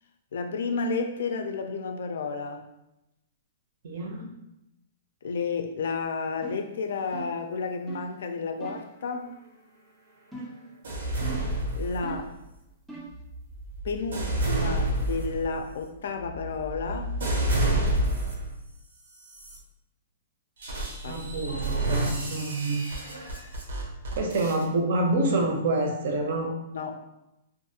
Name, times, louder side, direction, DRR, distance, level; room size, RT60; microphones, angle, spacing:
voice 1, 0.3-2.6 5.2-9.4 11.7-12.3 13.8-17.2 21.0-21.2 26.7-27.0, left 4 dB, 70° left, 5 dB, 0.3 m, -31 dB
voice 2, 3.8-4.3 21.1-22.8 24.1-26.5, right 2 dB, 60° right, 2 dB, 0.6 m, -27 dB
sound 1, 6.4-6.7 7.1-7.5 7.9-8.1 8.6-8.9 10.3-10.7 11.2-11.6 12.0-12.4 12.9-13.2, right 3 dB, 5° right, 0.3 m, -40 dB
sound 2, 10.8-12.4 13.1-18.6 19.2-19.6 20.6-24.6, right 1 dB, 90° right, 0.8 m, -29 dB
2.5 x 2.4 x 2.7 m, 0.90 s
hypercardioid pair, 165°, 0 cm